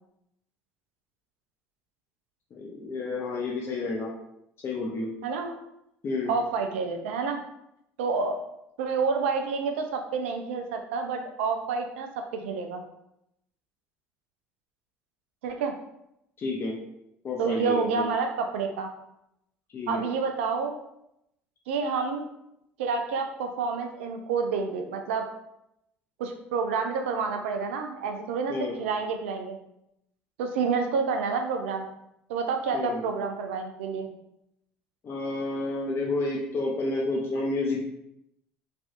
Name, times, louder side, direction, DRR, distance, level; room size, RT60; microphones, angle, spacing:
voice 1, 2.5-4.1 4.6-5.1 6.0-6.3 16.4-16.7 17.2-18.1 19.7-20.0 28.5-28.8 32.7-33.0 35.0-37.8, left 2 dB, 40° left, -3 dB, 0.6 m, -30 dB
voice 2, 5.2-5.5 6.3-7.4 8.0-8.4 8.8-12.8 15.4-15.7 17.4-18.9 19.9-20.8 21.7-22.2 22.8-25.3 26.2-29.6 30.4-31.9 32.3-34.1, right 5 dB, 80° right, 5 dB, 0.3 m, -29 dB
3.3 x 2.5 x 2.4 m, 0.81 s
hypercardioid pair, 65°, 6 cm